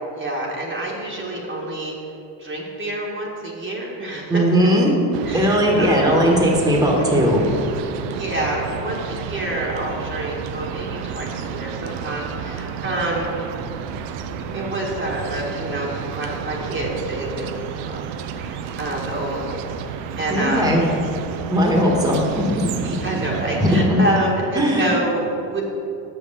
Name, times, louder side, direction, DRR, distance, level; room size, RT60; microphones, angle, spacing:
voice 1, 0.1-2.0 2.4-4.7 5.2-6.3 8.1-13.4 14.3-20.8 22.8-25.6, right 1 dB, 25° right, -3 dB, 1.4 m, -27 dB
voice 2, 4.3-4.9 5.3-7.5 20.3-20.8 21.5-22.7 23.6-24.0 24.5-24.9, equal, 5° right, -1 dB, 1.4 m, -18 dB
sound 1, 5.1-23.8, right 7 dB, 75° right, 0.7 m, -31 dB
6.1 x 5.7 x 6.6 m, 2.7 s
supercardioid pair, 95°, 48 cm